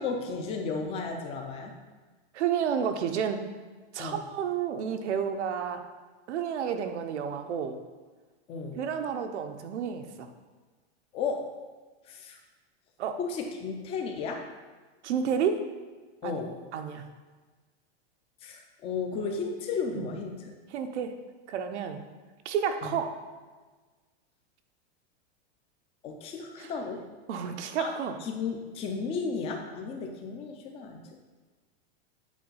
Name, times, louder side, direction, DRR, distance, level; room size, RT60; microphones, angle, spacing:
voice 1, 0.0-1.7 4.0-4.2 8.5-8.8 11.1-11.5 12.1-12.4 13.2-14.5 16.2-16.6 18.4-20.5 22.8-23.0 26.0-27.0 27.8-27.9 28.2-31.2, left 5 dB, 15° left, 3 dB, 0.5 m, -34 dB
voice 2, 2.3-3.5 3.9-5.8 6.3-7.8 8.8-10.3 13.0-13.2 15.0-15.7 16.2-16.4 16.7-17.1 19.9-20.1 20.7-21.2 21.5-22.0 22.4-23.2 26.6-26.7 27.3-28.2, right 7 dB, 80° right, 6 dB, 0.9 m, -30 dB
8.4 x 3.5 x 5.6 m, 1.3 s
supercardioid pair, 165°, 34 cm